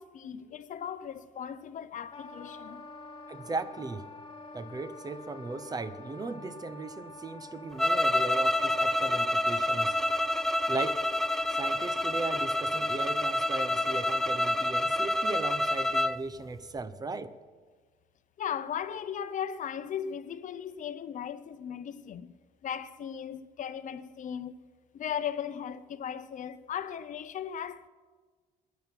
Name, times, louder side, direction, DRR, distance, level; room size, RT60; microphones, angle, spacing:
voice 1, 0.0-2.8 18.4-24.7 24.9-27.9, left 8 dB, 50° left, 0.8 m, -37 dB
Wind instrument woodwind instrument, 2.1-15.0, left 3 dB, 30° left, 3.0 m, -48 dB
voice 2, 3.3-4.1 4.5-10.0 10.7-11.0 11.5-17.3, right 3 dB, 20° right, 0.8 m, -37 dB
sound 1, 7.8-16.2, left 1 dB, ahead, 0.5 m, -28 dB
21.0 x 9.5 x 6.0 m
cardioid pair, 110°, 17 cm